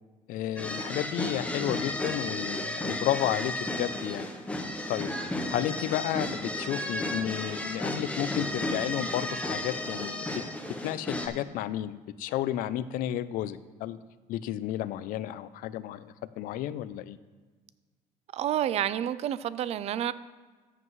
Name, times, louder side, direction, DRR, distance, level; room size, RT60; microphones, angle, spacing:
voice 1, 0.3-4.3 4.9-5.1 5.5-10.3 10.8-14.0 14.3-16.1 16.4-17.2, left 12 dB, 70° left, 15 dB, 0.4 m, -32 dB
sound 1, 0.6-11.3, left 1 dB, 10° left, 0.8 m, -33 dB
voice 2, 18.3-20.1, right 11 dB, 45° right, 16 dB, 0.4 m, -29 dB
13.5 x 7.6 x 3.1 m, 1.4 s
cardioid pair, 140°, 15 cm